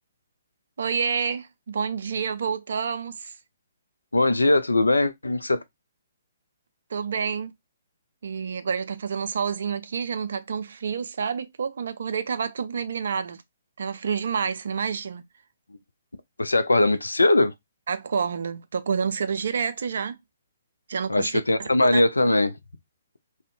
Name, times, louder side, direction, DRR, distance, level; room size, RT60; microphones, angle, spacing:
voice 1, 0.8-3.3 6.9-7.5 8.2-13.4 13.8-15.2 17.9-20.2 20.9-22.0, right 6 dB, 60° right, 0.3 m, -28 dB
voice 2, 4.1-5.6 16.4-17.5 21.1-22.6, left 2 dB, 80° left, 0.3 m, -20 dB
2.5 x 2.1 x 2.4 m
figure-of-eight pair, 130°, 0 cm